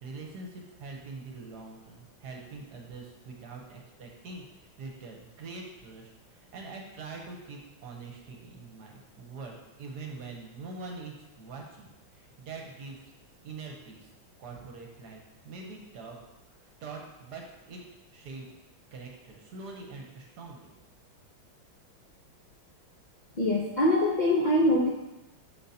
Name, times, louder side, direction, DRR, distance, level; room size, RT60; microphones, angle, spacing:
voice 1, 0.0-11.9 12.1-13.1 13.4-14.1 14.4-16.2 16.8-17.8 18.1-18.5 18.9-20.7, right 3 dB, 60° right, 1 dB, 1.4 m, -44 dB
voice 2, 23.3-24.9, left 1 dB, 55° left, -4 dB, 0.5 m, -23 dB
7.7 x 6.5 x 2.8 m, 0.98 s
omnidirectional pair, 2.2 m